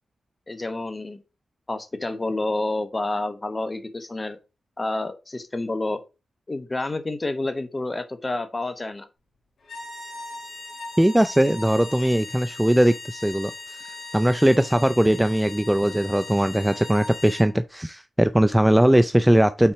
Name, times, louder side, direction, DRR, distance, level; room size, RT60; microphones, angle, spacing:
voice 1, 0.5-1.2 1.7-4.4 4.8-6.0 6.5-9.1, left 2 dB, 30° left, 1.1 m, -29 dB
sound 1, 9.6-17.5, left 2 dB, 75° left, 2.3 m, -39 dB
voice 2, 11.0-19.7, right 1 dB, 5° right, 0.3 m, -20 dB
5.8 x 4.2 x 4.6 m
cardioid pair, 65°, 0 cm